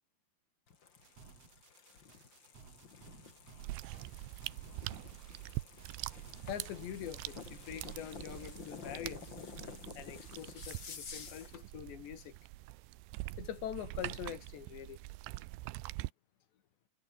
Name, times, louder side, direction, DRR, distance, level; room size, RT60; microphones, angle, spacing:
sound 1, 0.7-11.6, left 5 dB, 35° left, 2.5 m, -51 dB
sound 2, 1.0-8.4, right 5 dB, 35° right, 4.3 m, -58 dB
sound 3, 3.6-16.1, right 19 dB, 90° right, 3.1 m, -44 dB
voice 1, 6.5-9.4 10.0-12.4 13.4-15.0, left 10 dB, 80° left, 4.6 m, -44 dB
omnidirectional pair, 5.0 m